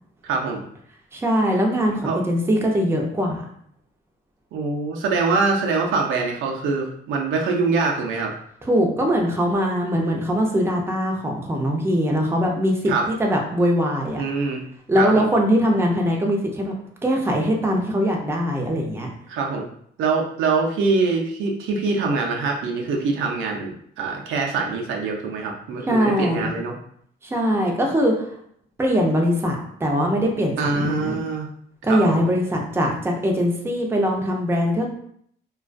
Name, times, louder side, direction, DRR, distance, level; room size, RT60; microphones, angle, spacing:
voice 1, 0.2-0.6 2.0-2.2 4.5-8.3 12.9-13.1 14.2-14.6 15.0-15.3 19.3-19.7 20.0-23.7 24.0-26.7 30.6-31.5 31.9-32.2, right 4 dB, 80° right, 1 dB, 0.5 m, -24 dB
voice 2, 1.1-3.4 8.6-14.2 14.9-16.7 17.0-19.1 25.8-26.5 27.2-28.3 28.8-31.2 31.8-34.9, equal, 10° right, 0 dB, 0.5 m, -21 dB
2.3 x 2.2 x 2.4 m, 0.67 s
cardioid pair, 90°, 20 cm